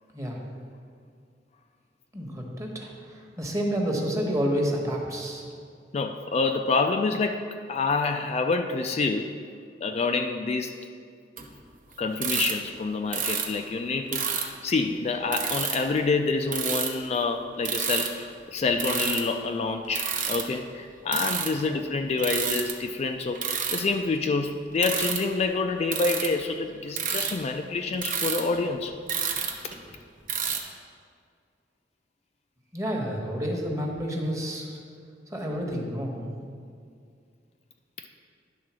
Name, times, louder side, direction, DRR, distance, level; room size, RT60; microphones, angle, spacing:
voice 1, 2.1-5.5 21.6-21.8 32.7-34.8 35.3-36.3, equal, 20° right, 0 dB, 1.1 m, -29 dB
voice 2, 5.9-7.4 7.7-9.3 9.8-10.7 12.0-23.4 23.7-28.9, left 3 dB, 35° left, 5 dB, 0.3 m, -27 dB
sound 1, 11.4-11.5 12.1-12.5 13.1-13.5 14.1-14.5 15.3-16.0 16.4-17.1 17.6-18.1 18.7-19.3 19.8-20.4 21.1-21.7 22.2-22.7 23.3-23.8 24.7-25.2 25.9-26.4 26.9-27.3 28.0-30.0 30.3-30.6, right 7 dB, 50° right, 0.8 m, -29 dB
10.5 x 3.8 x 6.1 m, 2.2 s
head